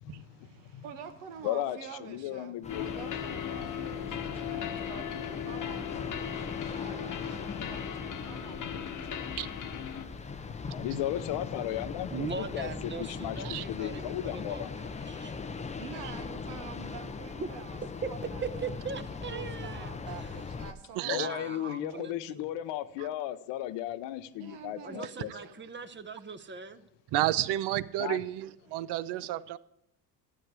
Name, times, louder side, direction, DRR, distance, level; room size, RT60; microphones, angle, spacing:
voice 1, 0.0-0.8 1.4-3.0 10.5-12.7 13.0-14.7 21.1-25.3 28.0-28.2, left 12 dB, 70° left, 0.8 m, -35 dB
voice 2, 0.8-9.1 15.8-18.7 19.3-22.2 24.4-25.5, right 7 dB, 80° right, 1.3 m, -47 dB
sound 1, 2.6-20.7, left 4 dB, 15° left, 0.5 m, -40 dB
sound 2, 2.7-10.1, left 9 dB, 45° left, 1.1 m, -37 dB
voice 3, 12.1-15.6 17.4-17.5 18.0-18.1 18.4-19.9 20.2-20.3 21.0-22.5 24.8-26.9, right 5 dB, 25° right, 0.8 m, -40 dB
voice 4, 21.0-21.3 23.0-23.1 27.1-29.6, right 14 dB, 65° right, 0.6 m, -31 dB
12.5 x 8.0 x 4.7 m
supercardioid pair, 80°, 45 cm